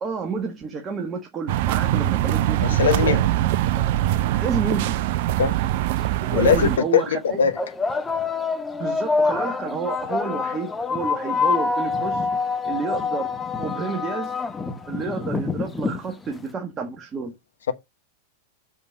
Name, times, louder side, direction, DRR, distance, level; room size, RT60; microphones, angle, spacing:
voice 1, 0.0-3.2 3.7-5.0 6.2-7.4 8.8-12.3 12.6-13.3 13.6-14.4 14.9-17.3, right 5 dB, 25° right, 1.5 m, -30 dB
sound 1, 1.5-6.8, right 14 dB, 50° right, 0.5 m, -22 dB
voice 2, 2.6-3.2 5.4-5.6 6.3-7.5, left 7 dB, 65° left, 1.1 m, -20 dB
sound 2, 5.5-5.6 6.5-6.7 7.5-16.4, left 4 dB, 10° left, 1.0 m, -26 dB
6.8 x 5.4 x 5.2 m
figure-of-eight pair, 90°, 0 cm